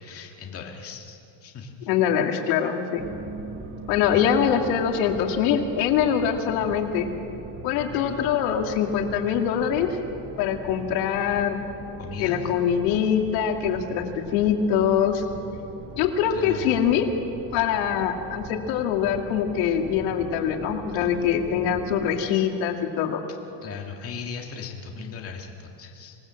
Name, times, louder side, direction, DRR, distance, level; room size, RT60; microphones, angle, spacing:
voice 1, 0.0-1.9 12.0-12.5 16.3-16.8 21.0-21.1 23.6-26.2, left 5 dB, 25° left, 1 dB, 2.1 m, -38 dB
voice 2, 1.9-3.1 3.9-7.1 7.6-9.9 10.4-11.6 12.2-14.0 14.3-15.3 15.9-17.1 17.5-23.2, left 8 dB, 80° left, 3 dB, 2.4 m, -23 dB
sound 1, 3.0-22.2, right 3 dB, 25° right, 1.4 m, -40 dB
26.0 x 18.5 x 7.7 m, 2.7 s
cardioid pair, 160°, 50 cm